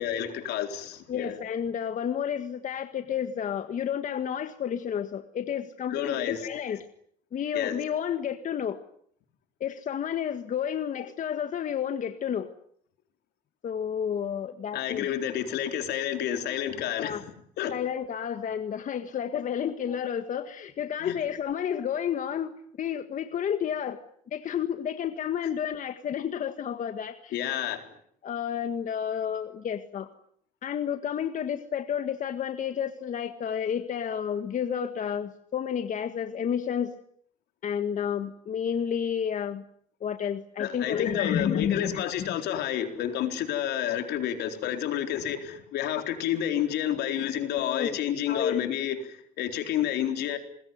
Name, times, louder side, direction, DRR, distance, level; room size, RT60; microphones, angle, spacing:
voice 1, 0.0-1.4 5.9-6.4 7.5-7.8 14.7-17.2 17.6-17.8 21.0-21.1 27.3-27.9 40.6-50.4, left 10 dB, 80° left, 6 dB, 4.1 m, -30 dB
voice 2, 1.1-6.8 7.3-8.8 9.6-12.5 13.6-15.1 17.0-17.2 17.7-24.0 24.3-27.4 28.2-30.1 30.6-36.9 37.6-39.6 40.0-42.4 47.5-48.0 48.3-48.6, left 8 dB, 50° left, 8 dB, 1.8 m, -31 dB
27.0 x 21.0 x 9.5 m, 0.67 s
cardioid pair, 110°, 17 cm